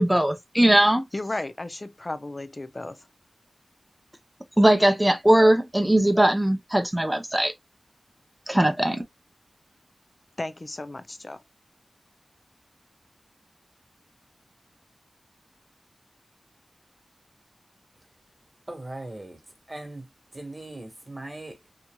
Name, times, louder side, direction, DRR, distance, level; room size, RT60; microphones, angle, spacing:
voice 1, 0.0-1.1 4.6-7.5 8.5-9.0, right 1 dB, 10° right, 0.6 m, -20 dB
voice 2, 1.1-3.0 10.4-11.4, left 2 dB, 40° left, 0.5 m, -34 dB
voice 3, 18.7-19.4 19.7-20.1 20.3-21.7, right 2 dB, 30° right, 1.3 m, -39 dB
2.8 x 2.7 x 2.2 m
wide cardioid pair, 55°, 0 cm